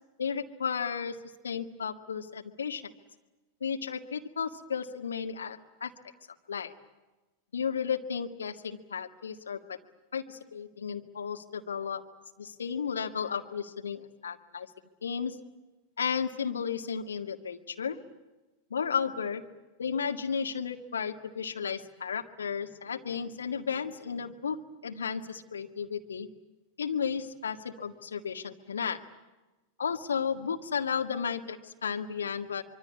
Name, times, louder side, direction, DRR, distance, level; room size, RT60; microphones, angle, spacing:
voice 1, 0.2-1.2 1.4-2.8 3.6-5.9 6.5-6.7 7.5-9.8 10.1-12.0 12.4-14.7 15.0-15.4 16.0-18.0 18.7-19.4 19.8-24.6 24.8-26.3 26.8-29.0 29.8-32.6, left 6 dB, 70° left, 5 dB, 1.9 m, -33 dB
25.5 x 24.0 x 8.5 m, 1.1 s
figure-of-eight pair, 90°, 0 cm